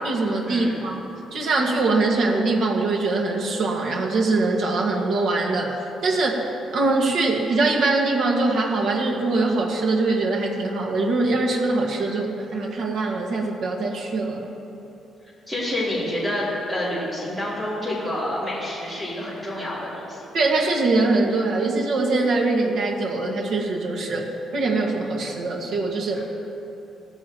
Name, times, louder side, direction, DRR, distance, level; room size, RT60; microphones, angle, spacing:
voice 1, 0.0-1.0 1.3-14.5 20.3-26.2, right 3 dB, 60° right, -1 dB, 1.8 m, -23 dB
voice 2, 15.5-20.3 26.1-26.2, left 1 dB, 5° right, -8 dB, 3.6 m, -28 dB
16.5 x 14.5 x 3.1 m, 2.9 s
cardioid pair, 170°, 0 cm